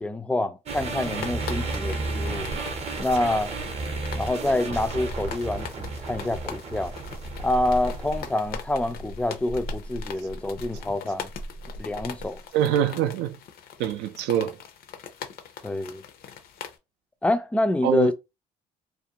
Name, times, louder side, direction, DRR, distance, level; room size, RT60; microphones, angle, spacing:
voice 1, 0.0-2.5 3.0-3.5 4.1-7.0 7.4-11.3 11.8-12.4 15.6-16.0 17.2-18.1, left 1 dB, 5° left, 0.3 m, -27 dB
sound 1, 0.7-8.3, right 3 dB, 40° right, 0.6 m, -33 dB
sound 2, 1.0-16.8, left 8 dB, 65° left, 0.5 m, -42 dB
sound 3, 6.8-12.5, right 1 dB, 85° left, 1.2 m, -40 dB
voice 2, 12.5-13.4 13.8-14.6 17.8-18.1, right 10 dB, 85° right, 0.4 m, -24 dB
2.4 x 2.2 x 2.8 m
cardioid pair, 110°, 17 cm